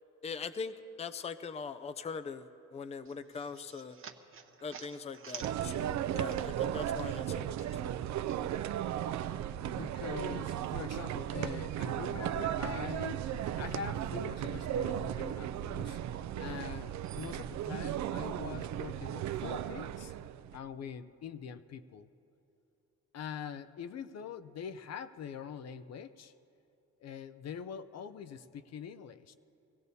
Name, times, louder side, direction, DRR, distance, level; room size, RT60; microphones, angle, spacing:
voice 1, 0.2-4.0 4.6-7.6, left 5 dB, 20° left, 11 dB, 0.5 m, -41 dB
sound 1, 3.0-6.7 7.0-8.4, right 6 dB, 45° right, 1.0 m, -50 dB
sound 2, 5.4-20.6, right 11 dB, 65° right, 0.5 m, -36 dB
voice 2, 9.5-16.0 16.4-20.1 20.5-22.1 23.1-26.3 27.0-29.3, left 7 dB, 60° left, 10 dB, 0.6 m, -44 dB
24.0 x 16.5 x 2.8 m, 2.8 s
cardioid pair, 90°, 30 cm